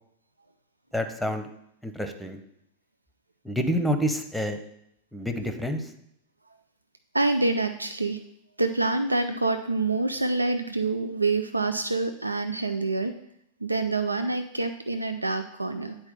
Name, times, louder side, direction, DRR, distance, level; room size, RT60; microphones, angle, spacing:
voice 1, 0.9-1.5 1.8-2.4 3.4-4.6 5.1-5.9, equal, ahead, 7 dB, 0.8 m, -28 dB
voice 2, 7.1-8.2 8.6-13.1 13.6-16.0, right 3 dB, 85° right, 8 dB, 0.4 m, -26 dB
8.8 x 4.6 x 5.4 m, 0.76 s
figure-of-eight pair, 90°, 0 cm